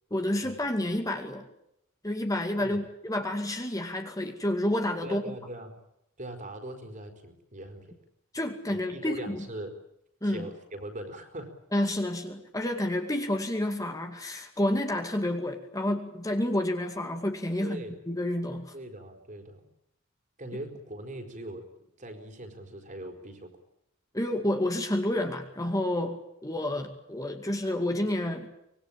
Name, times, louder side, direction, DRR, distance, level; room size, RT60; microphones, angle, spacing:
voice 1, 0.1-1.5 2.0-5.3 8.3-9.4 10.2-10.5 11.7-18.7 24.1-28.5, left 1 dB, 15° left, 4 dB, 2.3 m, -29 dB
voice 2, 5.0-5.8 6.2-8.0 8.7-9.8 10.2-11.5 17.6-18.0 18.7-19.7 20.4-21.6 22.0-23.5, right 1 dB, 40° right, 6 dB, 4.4 m, -41 dB
25.0 x 21.0 x 8.9 m, 0.79 s
head